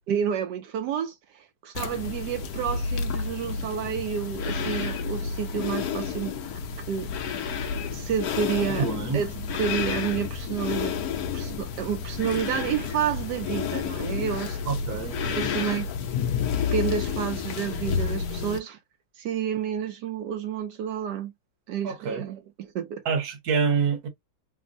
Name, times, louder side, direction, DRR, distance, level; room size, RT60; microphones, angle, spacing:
voice 1, 0.1-6.3 6.9-7.1 7.9-10.9 11.3-14.6 15.3-15.9 16.7-18.8 19.2-21.3 21.7-23.0, right 8 dB, 75° right, 1.0 m, -30 dB
sound 1, 1.7-18.6, left 6 dB, 75° left, 0.8 m, -30 dB
voice 2, 8.8-9.2 14.7-15.5 21.8-22.2 23.0-24.1, right 6 dB, 55° right, 1.4 m, -27 dB
3.4 x 2.1 x 3.8 m
omnidirectional pair, 2.2 m